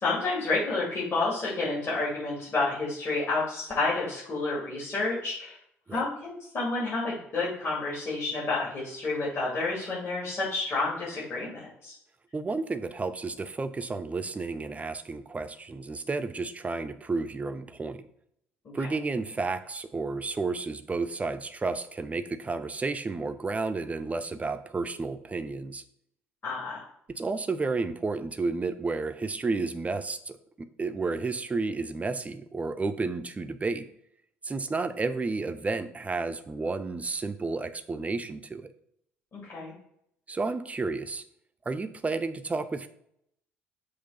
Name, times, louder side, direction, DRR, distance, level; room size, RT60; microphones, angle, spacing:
voice 1, 0.0-5.6 5.9-11.9 18.6-18.7 26.4-26.8 39.3-39.7, left 3 dB, 40° left, -7 dB, 2.4 m, -30 dB
voice 2, 12.3-18.0 18.7-25.8 27.1-33.9 34.4-38.7 40.3-41.2 41.7-42.9, right 3 dB, 20° right, 11 dB, 0.6 m, -31 dB
5.9 x 3.1 x 5.6 m, 0.74 s
figure-of-eight pair, 55°, 7 cm